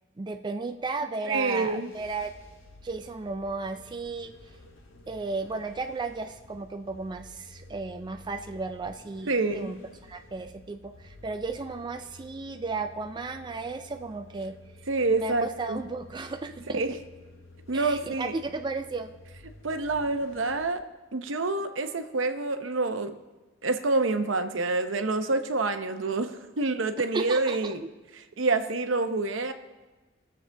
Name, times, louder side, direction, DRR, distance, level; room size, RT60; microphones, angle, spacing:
voice 1, 0.2-2.3 2.8-4.3 5.1-9.8 10.0-14.6 15.1-16.8 17.7-19.1 27.1-27.7, right 3 dB, 25° right, 6 dB, 0.4 m, -34 dB
sound 1, 1.3-20.7, left 2 dB, 90° left, 1.4 m, -52 dB
voice 2, 1.3-1.9 9.3-9.7 14.9-15.8 16.7-17.0 17.7-18.3 19.6-20.8 21.1-23.1 23.6-27.8 28.4-29.5, right 3 dB, 70° right, 8 dB, 0.8 m, -27 dB
20.5 x 7.3 x 3.4 m, 1.2 s
head